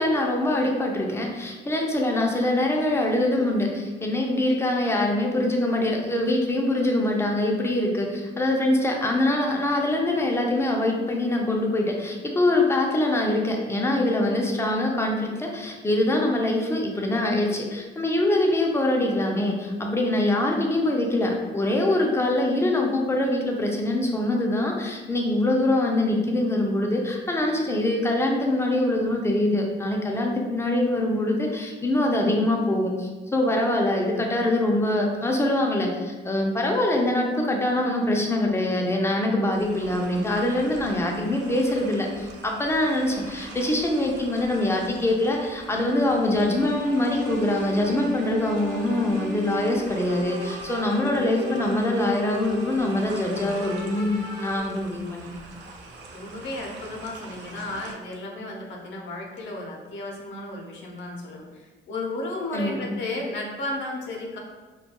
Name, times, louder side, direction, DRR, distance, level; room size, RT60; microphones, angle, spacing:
voice 1, 0.0-55.4 62.5-62.9, left 1 dB, 15° left, 0 dB, 0.4 m, -24 dB
sound 1, 39.5-57.9, right 3 dB, 70° right, 0.4 m, -45 dB
sound 2, 46.4-54.6, equal, 40° right, 0.9 m, -36 dB
voice 2, 56.1-64.4, left 2 dB, 70° left, -1 dB, 0.5 m, -34 dB
2.3 x 2.2 x 2.8 m, 1.3 s
cardioid pair, 90°, 20 cm